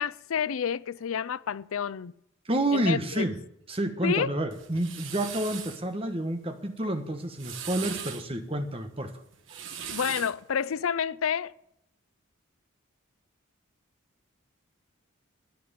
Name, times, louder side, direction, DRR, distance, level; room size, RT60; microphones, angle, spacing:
voice 1, 0.0-2.1 2.7-3.3 4.0-4.4 9.9-11.5, left 7 dB, 85° left, 0.5 m, -29 dB
voice 2, 2.4-3.4 3.7-9.1 9.5-9.6, right 1 dB, 25° right, 1.2 m, -29 dB
sound 1, 4.5-5.8 7.2-8.3 9.3-10.4, right 8 dB, 65° right, 1.2 m, -39 dB
10.5 x 9.5 x 9.0 m
head